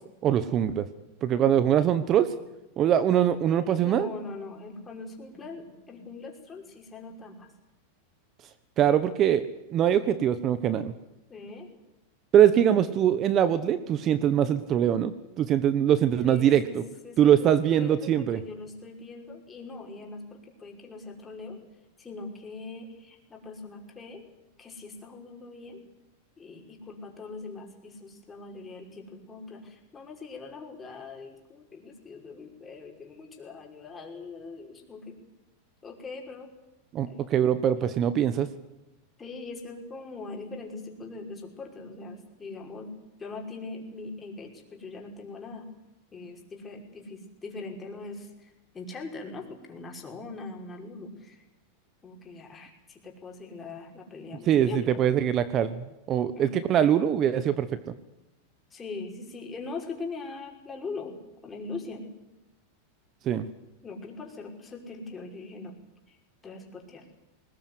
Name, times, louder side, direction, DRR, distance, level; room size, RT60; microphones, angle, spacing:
voice 1, 0.2-0.9 1.2-2.3 2.8-4.1 8.8-9.4 9.7-10.9 12.3-16.8 17.2-18.4 36.9-38.5 54.5-57.8 63.3-63.4, right 10 dB, 35° right, 13 dB, 1.2 m, -23 dB
voice 2, 3.7-7.5 11.3-11.7 16.2-16.8 17.0-21.6 22.0-24.2 24.6-25.8 26.4-35.2 35.8-36.5 37.1-37.2 39.2-42.9 43.2-45.7 46.1-51.4 52.0-55.0 56.3-56.5 58.7-61.2 61.4-62.1 63.8-65.8 66.1-66.2 66.4-67.1, left 3 dB, 20° left, 1 dB, 5.5 m, -41 dB
20.0 x 20.0 x 9.6 m, 0.94 s
hypercardioid pair, 120°, 0 cm